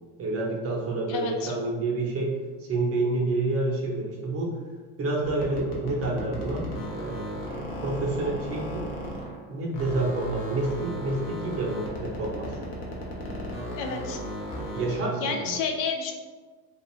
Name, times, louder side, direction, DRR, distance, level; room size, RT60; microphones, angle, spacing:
voice 1, 0.2-2.3 2.6-4.5 5.0-6.6 6.9-8.9 9.5-12.7 14.7-15.6, right 2 dB, 30° right, -2 dB, 0.6 m, -29 dB
voice 2, 1.1-1.5 13.8-14.2 15.2-16.1, left 5 dB, 75° left, 4 dB, 0.6 m, -30 dB
sound 1, 5.2-9.4 9.7-15.1, equal, 45° left, 0.9 m, -35 dB
2.4 x 2.4 x 3.0 m, 1.4 s
supercardioid pair, 105°, 48 cm